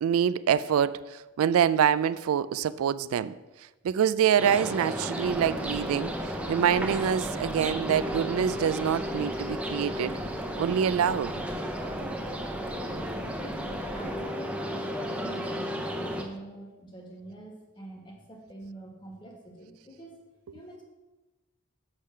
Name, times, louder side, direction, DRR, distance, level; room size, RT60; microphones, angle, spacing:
voice 1, 0.0-3.3 3.8-10.2 10.6-11.3, right 8 dB, 90° right, 0.3 m, -25 dB
sound 1, 4.4-16.2, equal, 5° right, 0.7 m, -33 dB
Crackle, 5.2-14.2, right 1 dB, 70° right, 1.1 m, -47 dB
voice 2, 13.9-20.2 20.5-20.8, right 1 dB, 20° left, 1.5 m, -45 dB
7.4 x 6.5 x 5.7 m
head